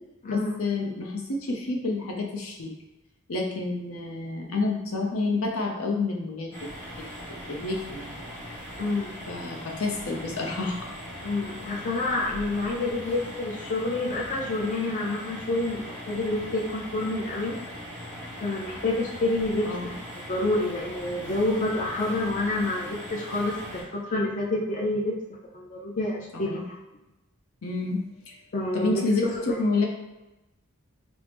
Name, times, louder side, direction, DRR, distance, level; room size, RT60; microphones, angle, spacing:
voice 1, 0.3-2.7 3.3-6.5 7.5-8.2 9.3-10.9 19.6-19.9 26.3-26.6 27.6-28.4 28.7-29.9, left 3 dB, 80° left, 0 dB, 0.7 m, -29 dB
sound 1, 6.5-23.8, equal, 10° left, 1.0 m, -40 dB
voice 2, 8.8-9.2 11.2-17.6 18.4-19.7 20.3-25.2 25.5-26.8 28.5-29.6, left 2 dB, 35° left, -2 dB, 0.4 m, -28 dB
4.5 x 2.0 x 3.3 m, 1.0 s
head